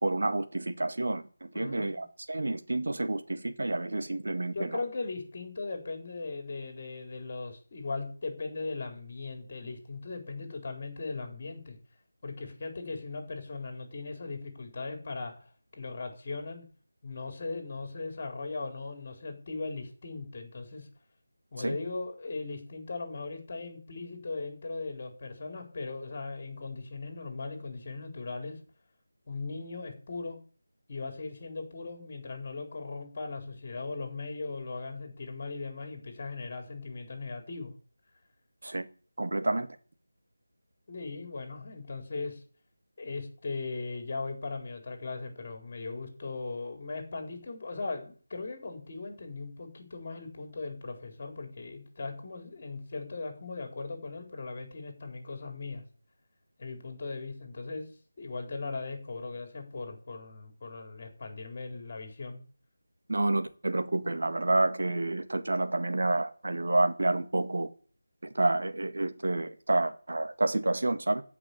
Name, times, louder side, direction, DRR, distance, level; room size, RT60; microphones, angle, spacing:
voice 1, 0.0-4.8 21.6-21.8 38.6-38.9 39.2-39.7 63.1-67.7 68.3-71.2, right 2 dB, 55° right, 7 dB, 1.9 m, -29 dB
voice 2, 1.5-2.1 4.5-11.8 12.2-15.3 15.8-16.6 17.0-20.9 21.5-28.6 29.3-30.4 30.9-37.7 40.9-42.4 43.0-55.8 56.6-57.9 58.2-62.4, left 3 dB, 30° left, 4 dB, 4.3 m, -38 dB
15.0 x 6.1 x 8.6 m, 0.42 s
figure-of-eight pair, 165°, 0 cm